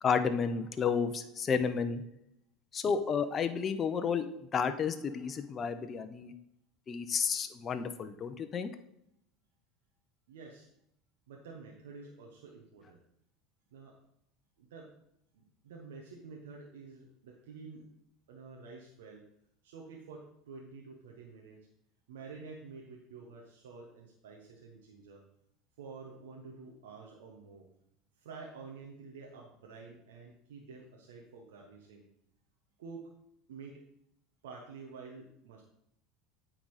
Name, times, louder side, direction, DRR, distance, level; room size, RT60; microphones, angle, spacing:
voice 1, 0.0-2.1 2.7-6.3 6.9-8.7, left 6 dB, 35° left, 9 dB, 0.6 m, -31 dB
voice 2, 10.3-10.7 11.3-13.0 13.7-14.0 14.6-14.9 15.3-17.9 18.3-19.2 19.6-21.6 22.1-25.2 25.8-27.6 28.2-32.0 32.8-33.1 33.5-33.8 34.4-35.6, right 4 dB, 85° right, -1 dB, 1.0 m, -49 dB
8.7 x 3.9 x 4.8 m, 0.75 s
hypercardioid pair, 90°, 0 cm